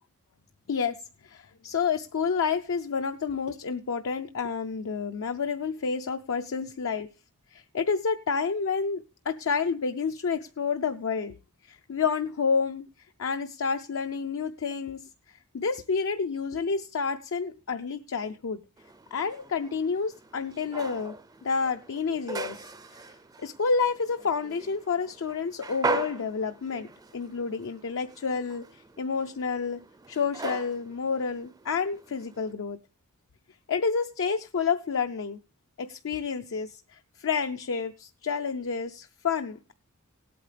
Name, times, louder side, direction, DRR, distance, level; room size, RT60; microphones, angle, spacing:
voice 1, 0.7-1.0 1.2-7.1 7.5-11.4 11.6-12.9 13.2-15.0 15.3-18.6 19.1-23.0 23.4-29.8 30.1-32.8 33.7-35.4 35.8-39.7, left 5 dB, 65° left, 0.5 m, -29 dB
sound 1, 18.8-32.5, right 3 dB, 15° right, 0.4 m, -39 dB
17.5 x 8.6 x 3.3 m
head